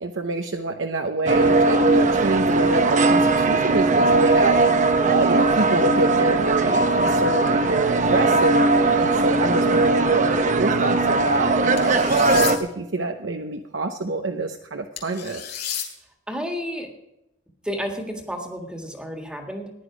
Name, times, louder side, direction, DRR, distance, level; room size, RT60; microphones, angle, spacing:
voice 1, 0.0-15.4, right 2 dB, 70° right, 4 dB, 0.8 m, -27 dB
sound 1, 1.3-12.6, right 3 dB, 40° right, 0.8 m, -19 dB
sound 2, 11.8-12.5 15.0-15.9, left 9 dB, 55° left, 3.6 m, -31 dB
voice 2, 16.3-16.9 17.6-19.7, equal, 5° right, 3 dB, 1.7 m, -31 dB
15.0 x 10.5 x 5.0 m, 0.89 s
head